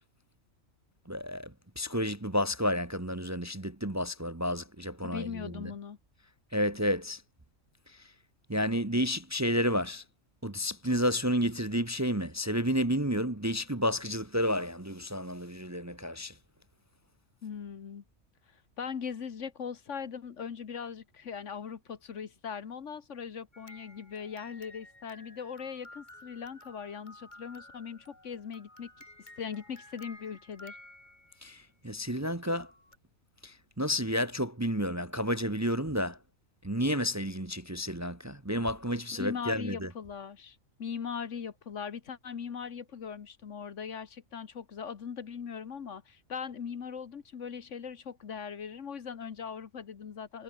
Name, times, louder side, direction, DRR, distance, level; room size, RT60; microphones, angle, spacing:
voice 1, 1.1-1.5 1.8-5.7 6.5-7.2 8.5-10.0 10.4-16.3 31.4-32.7 33.4-36.2 36.6-39.9, equal, 15° right, 1.0 m, -31 dB
voice 2, 5.0-6.0 17.4-18.0 18.8-28.9 29.2-30.8 39.1-50.4, left 7 dB, 60° left, 1.5 m, -40 dB
sound 1, 23.5-31.6 32.4-33.0, left 1 dB, 35° left, 4.9 m, -53 dB
omnidirectional pair, 1.4 m